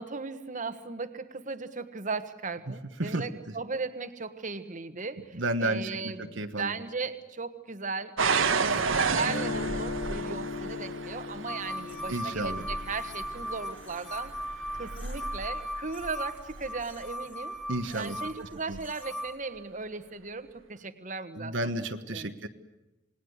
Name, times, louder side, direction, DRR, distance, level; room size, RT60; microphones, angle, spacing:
voice 1, 0.0-14.3 14.8-17.6 17.9-21.7 22.1-22.3, right 4 dB, 40° right, 9 dB, 1.5 m, -37 dB
voice 2, 5.3-6.7 12.1-12.7 17.7-18.2 18.7-18.8 21.4-22.5, right 2 dB, 70° right, 7 dB, 1.4 m, -32 dB
sound 1, 8.2-17.0 17.7-18.2 18.7-18.8, right 5 dB, 90° right, 1.6 m, -32 dB
Guitar, 9.2-15.2, left 4 dB, 45° left, 1.4 m, -39 dB
sound 2, 11.5-19.4, equal, 5° left, 2.7 m, -38 dB
28.0 x 20.0 x 8.1 m, 1.0 s
head